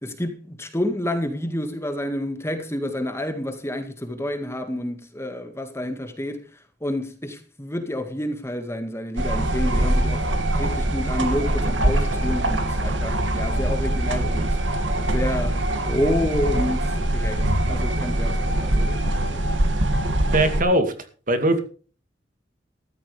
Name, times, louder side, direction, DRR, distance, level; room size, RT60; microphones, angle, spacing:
voice 1, 0.0-6.5 6.8-14.6 15.1-19.5, left 1 dB, 15° left, 2.0 m, -29 dB
sound 1, 9.2-20.6, right 1 dB, 90° right, 2.4 m, -23 dB
voice 2, 20.3-20.9 21.3-21.6, right 1 dB, 50° right, 2.3 m, -20 dB
14.0 x 13.5 x 3.5 m
head